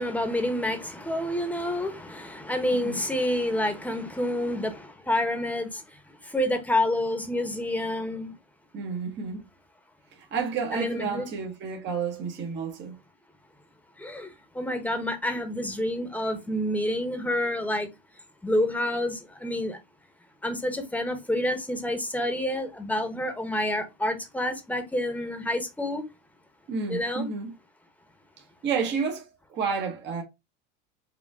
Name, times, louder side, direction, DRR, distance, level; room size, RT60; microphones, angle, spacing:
voice 1, 0.0-8.4 10.7-11.3 14.0-17.9 18.4-19.8 20.4-26.0 26.9-27.3, left 1 dB, 5° left, 1.0 m, -28 dB
voice 2, 2.7-3.0 8.7-9.4 10.1-12.9 26.7-27.5 28.6-30.2, right 5 dB, 35° right, 1.2 m, -31 dB
4.9 x 2.5 x 3.5 m
supercardioid pair, 105°, 29 cm